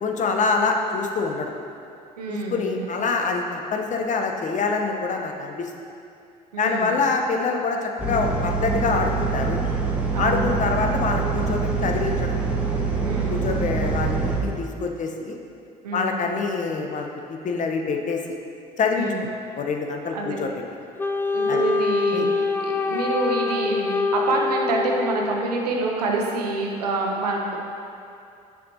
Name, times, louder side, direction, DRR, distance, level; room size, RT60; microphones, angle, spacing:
voice 1, 0.0-1.5 2.3-5.7 6.6-9.6 10.2-12.4 13.3-15.3 15.9-18.2 18.8-19.3 19.6-20.5 21.5-21.6 22.1-22.3, left 4 dB, 40° left, 3 dB, 0.7 m, -25 dB
voice 2, 2.2-2.9 6.5-7.1 10.1-10.6 13.0-13.4 15.8-16.1 18.9-19.3 20.1-20.4 21.3-27.6, right 3 dB, 90° right, 0 dB, 0.7 m, -27 dB
sound 1, 8.0-14.4, right 4 dB, 5° right, 1.2 m, -25 dB
Wind instrument woodwind instrument, 21.0-25.6, left 4 dB, 10° left, 0.3 m, -25 dB
7.5 x 5.8 x 2.8 m, 2.5 s
hypercardioid pair, 65°, 20 cm